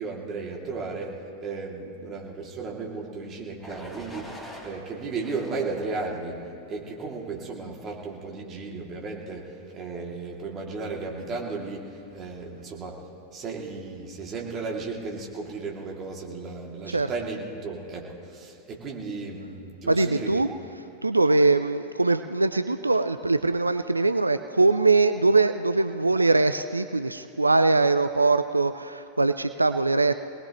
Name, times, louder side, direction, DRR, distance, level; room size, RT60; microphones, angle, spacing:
voice 1, 0.0-4.3 4.6-6.4 6.7-13.0 13.3-20.4, right 4 dB, 30° right, -2 dB, 2.5 m, -35 dB
sound 1, 3.6-4.7 5.2-6.3 6.8-7.2, equal, 10° left, 4.7 m, -44 dB
voice 2, 19.9-30.1, right 3 dB, 80° right, 11 dB, 0.4 m, -22 dB
23.0 x 19.0 x 3.0 m, 2.8 s
figure-of-eight pair, 90°, 0 cm